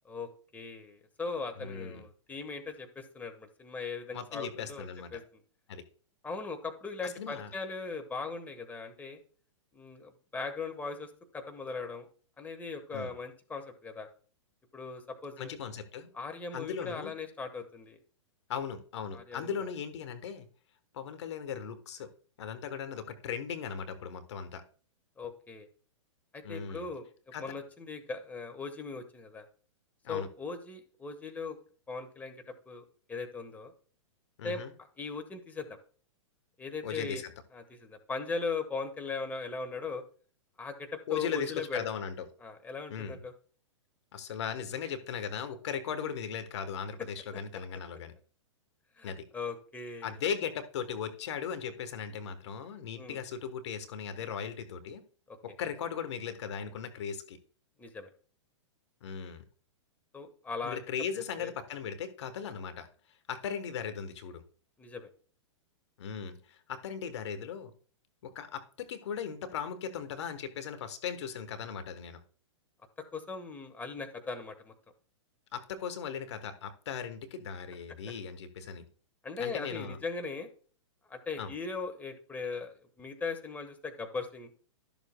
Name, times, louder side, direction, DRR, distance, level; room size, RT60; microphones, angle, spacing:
voice 1, 0.0-5.2 6.2-9.2 9.7-12.1 12.4-14.1 14.7-15.5 16.1-18.0 19.1-19.6 25.2-25.7 26.3-27.1 27.4-29.5 30.1-31.6 31.9-33.7 34.4-34.6 35.0-35.8 36.6-37.2 37.5-40.0 40.6-41.9 42.4-43.3 49.0-50.2 53.0-53.2 55.3-55.4 57.8-58.1 60.1-60.8 61.4-61.5 64.8-65.1 73.1-74.7 79.2-80.5 81.1-84.5, left 4 dB, 10° left, 5 dB, 1.3 m, -39 dB
voice 2, 1.6-2.0 4.1-5.1 5.7-5.8 7.0-7.5 12.9-13.1 15.4-16.1 16.5-17.1 18.5-20.5 20.9-22.1 22.4-24.6 26.4-26.9 27.3-27.4 30.0-30.3 34.4-34.7 36.8-37.3 41.1-42.3 42.9-43.2 44.1-48.1 49.0-49.3 50.0-55.0 55.4-57.4 59.0-59.4 60.6-62.9 63.3-64.4 66.0-67.7 68.2-72.2 75.5-78.8 79.4-80.0 81.4-81.5, left 7 dB, 60° left, 8 dB, 1.3 m, -38 dB
12.5 x 7.0 x 2.3 m, 0.42 s
hypercardioid pair, 115°, 16 cm